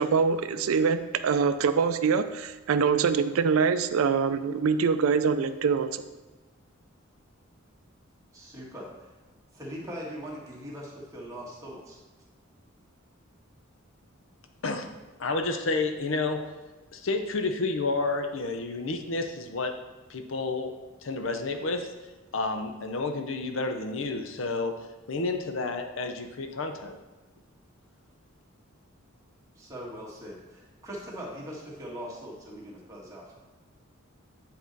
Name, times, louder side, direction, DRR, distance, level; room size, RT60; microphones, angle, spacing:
voice 1, 0.0-6.0, right 5 dB, 85° right, 11 dB, 0.4 m, -24 dB
voice 2, 8.3-9.1 9.5-12.0 29.5-33.3, equal, 15° right, -4 dB, 1.6 m, -41 dB
voice 3, 15.2-16.5 16.9-19.7 20.1-20.7 21.0-21.9 22.3-24.8 25.1-27.0, left 3 dB, 65° left, 6 dB, 0.6 m, -30 dB
8.3 x 4.3 x 4.0 m, 1.2 s
head